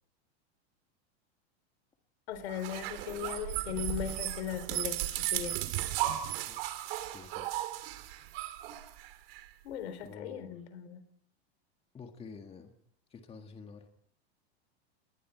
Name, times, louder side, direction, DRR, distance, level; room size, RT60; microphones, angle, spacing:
voice 1, 2.3-5.6 9.6-11.0, left 9 dB, 80° left, 11 dB, 4.0 m, -38 dB
sound 1, 2.5-9.4, right 14 dB, 60° right, 2.8 m, -35 dB
voice 2, 7.0-7.5 10.0-10.6 11.9-12.7 13.1-13.9, left 5 dB, 15° left, 5 dB, 1.9 m, -49 dB
29.5 x 20.5 x 4.6 m, 0.65 s
supercardioid pair, 140°, 32 cm